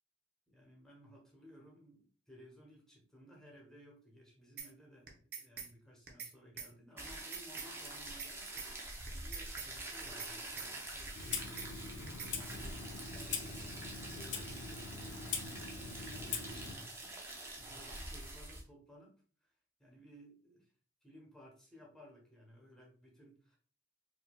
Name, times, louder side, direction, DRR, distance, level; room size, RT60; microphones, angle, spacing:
voice 1, 0.5-8.5 9.1-11.9 12.2-19.1 19.4-19.5 19.8-20.7 21.0-23.6, equal, 5° left, -2 dB, 1.1 m, -58 dB
sound 1, 4.6-4.7 5.1-5.7 6.1-6.3 6.6-6.7 7.1-7.7 8.1-8.3 8.6-8.7 9.1-9.7 10.1-10.3 10.6-10.7 11.1-11.7 12.1-12.3, right 6 dB, 55° right, 0.7 m, -44 dB
sound 2, 7.0-18.6, right 2 dB, 15° right, 0.6 m, -46 dB
Clock, 11.1-16.7, left 5 dB, 70° left, 0.6 m, -42 dB
4.6 x 2.8 x 2.3 m, 0.42 s
head